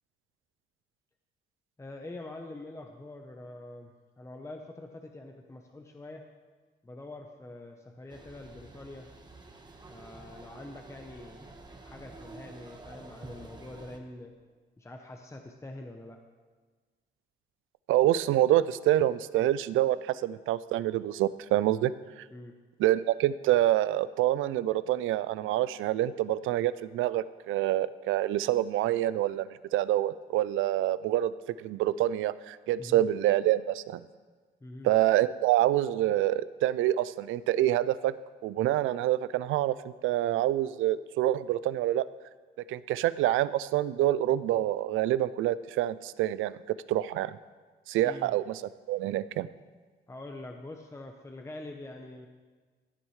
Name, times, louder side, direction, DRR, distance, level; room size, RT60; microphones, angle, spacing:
voice 1, 1.8-3.9 4.2-6.2 6.8-9.1 9.9-11.5 11.8-14.3 14.8-16.2 22.3-22.6 32.8-33.1 34.6-34.9 48.0-48.3 50.1-52.3, left 2 dB, 15° left, 3 dB, 0.8 m, -45 dB
sound 1, 8.1-14.0, right 3 dB, 20° right, 1.2 m, -49 dB
voice 2, 17.9-22.3 22.8-31.3 31.6-34.0 34.8-38.1 38.4-39.7 40.0-42.1 42.7-46.6 46.9-47.4 47.9-48.6 48.9-49.5, right 13 dB, 85° right, 17 dB, 0.4 m, -26 dB
16.0 x 8.9 x 3.2 m, 1.4 s
cardioid pair, 90°, 20 cm